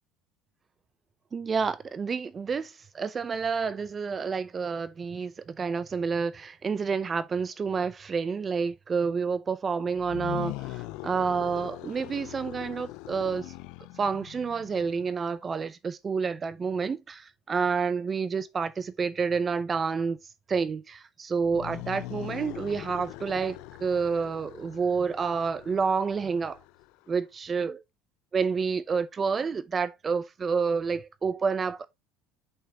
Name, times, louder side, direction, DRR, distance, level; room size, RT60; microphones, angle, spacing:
voice 1, 1.3-13.5 14.0-20.2 20.5-26.6 27.1-27.8 28.3-31.8, right 5 dB, 25° right, 0.5 m, -29 dB
sound 1, 10.0-15.2 21.4-27.1, left 20 dB, 70° left, 0.4 m, -41 dB
6.8 x 5.5 x 2.8 m
cardioid pair, 130°, 0 cm